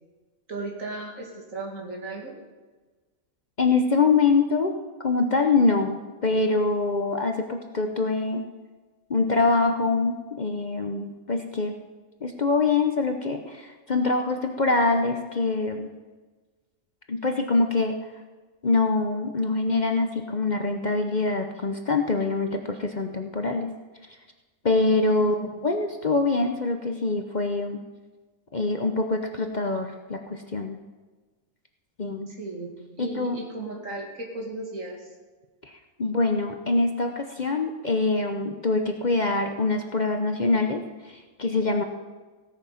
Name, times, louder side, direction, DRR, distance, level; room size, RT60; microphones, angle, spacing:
voice 1, 0.5-2.4 25.2-25.7 32.3-35.1, right 3 dB, 70° right, 0 dB, 2.7 m, -36 dB
voice 2, 3.6-4.8 5.0-8.4 9.1-11.8 12.2-15.9 17.1-18.0 18.6-23.7 24.6-27.8 28.5-30.8 32.0-32.3 33.0-33.4 35.6-35.7 36.0-41.8, left 3 dB, 40° left, 4 dB, 0.8 m, -24 dB
16.5 x 8.7 x 5.7 m, 1.3 s
omnidirectional pair, 1.4 m